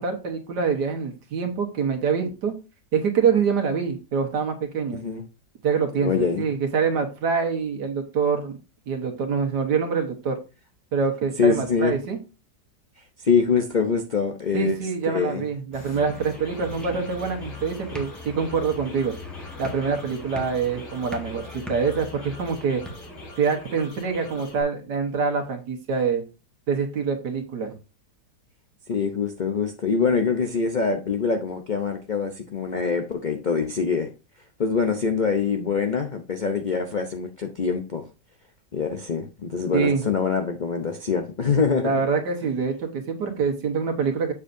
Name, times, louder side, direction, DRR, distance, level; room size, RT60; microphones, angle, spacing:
voice 1, 0.0-2.5 2.9-5.0 5.6-8.6 8.9-10.4 10.9-12.2 14.5-19.1 19.6-22.8 23.4-26.2 26.7-27.8 39.7-40.1 41.8-44.3, right 5 dB, 80° right, 1.8 m, -25 dB
voice 2, 6.0-6.5 11.4-12.0 13.2-14.8 15.1-15.4 28.9-34.1 34.6-38.0 38.7-41.9, left 5 dB, 60° left, 0.4 m, -24 dB
sound 1, 15.7-24.6, left 1 dB, 90° left, 2.6 m, -44 dB
sound 2, 15.7-23.3, left 1 dB, ahead, 1.0 m, -40 dB
7.3 x 6.9 x 2.6 m
omnidirectional pair, 1.8 m